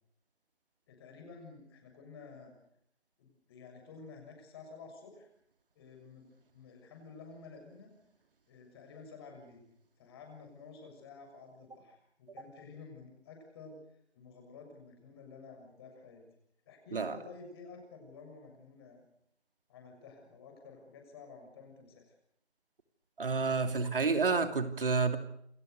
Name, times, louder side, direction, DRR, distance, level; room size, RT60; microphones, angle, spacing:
voice 1, 0.9-2.5 3.2-5.3 5.7-7.9 8.5-9.6 10.0-13.8 14.1-16.2 16.6-19.0 19.7-22.1, left 4 dB, 25° left, 4 dB, 6.7 m, -51 dB
voice 2, 23.2-25.2, right 4 dB, 55° right, 7 dB, 2.8 m, -29 dB
29.0 x 21.0 x 6.6 m, 0.74 s
figure-of-eight pair, 160°, 33 cm